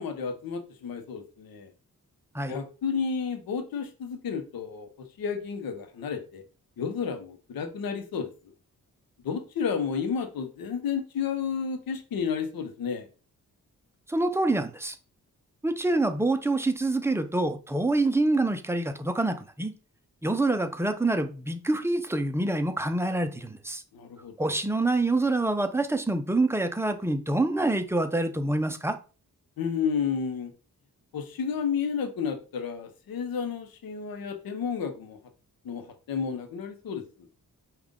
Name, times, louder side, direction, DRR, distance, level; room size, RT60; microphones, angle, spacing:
voice 1, 0.0-1.7 2.5-4.9 5.2-6.4 6.8-8.3 9.2-13.1 23.9-24.6 29.6-30.5 31.1-35.2 35.6-37.3, left 6 dB, 85° left, 7 dB, 0.8 m, -31 dB
voice 2, 14.1-15.0 15.6-19.7 20.2-23.8 24.4-29.0, right 2 dB, 5° right, 8 dB, 0.5 m, -26 dB
5.3 x 2.4 x 3.6 m, 0.35 s
cardioid pair, 75°, 34 cm